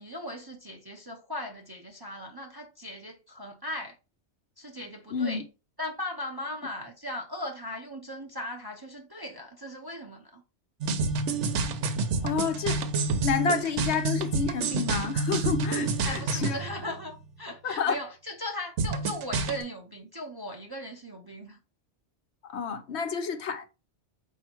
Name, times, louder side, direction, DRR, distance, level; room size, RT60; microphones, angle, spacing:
voice 1, 0.0-4.0 4.6-5.4 5.8-10.4 16.0-21.6, left 1 dB, 25° right, 0.5 m, -38 dB
voice 2, 5.1-5.4 12.2-12.8 13.2-16.6 17.6-18.0 22.5-23.7, left 6 dB, 70° left, 0.9 m, -29 dB
sound 1, 10.8-17.4 18.8-19.6, right 3 dB, 90° right, 1.0 m, -29 dB
4.4 x 2.7 x 4.3 m
omnidirectional pair, 1.2 m